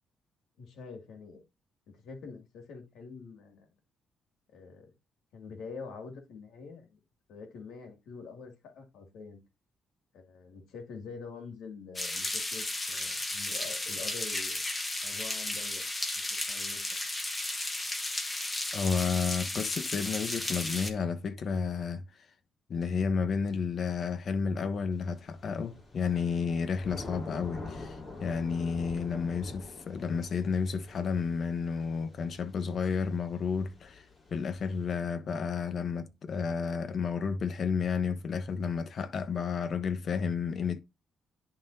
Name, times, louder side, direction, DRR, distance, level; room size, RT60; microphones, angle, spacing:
voice 1, 0.6-1.4 1.9-3.7 4.5-4.9 5.3-7.0 7.3-9.4 10.1-14.6 15.0-15.9 16.5-16.8, left 5 dB, 80° left, 2.3 m, -45 dB
sound 1, 12.0-20.9, left 2 dB, 20° left, 1.2 m, -34 dB
voice 2, 18.7-22.0 22.7-34.0 34.3-40.8, left 5 dB, 55° left, 1.0 m, -31 dB
Thunder / Rain, 25.0-34.9, left 3 dB, 35° left, 3.3 m, -46 dB
11.0 x 3.9 x 2.7 m
cardioid pair, 90°, 0 cm